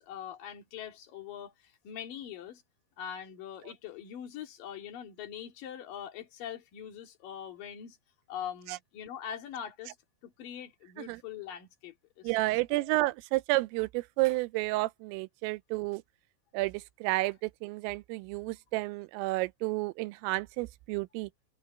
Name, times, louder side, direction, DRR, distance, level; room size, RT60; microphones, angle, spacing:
voice 1, 0.0-2.6 3.0-8.0 8.3-10.0 10.2-12.3 12.7-12.9, left 9 dB, 50° left, 3.7 m, -42 dB
voice 2, 12.2-16.0 16.5-21.3, right 21 dB, 85° right, 3.2 m, -31 dB
omnidirectional pair, 5.8 m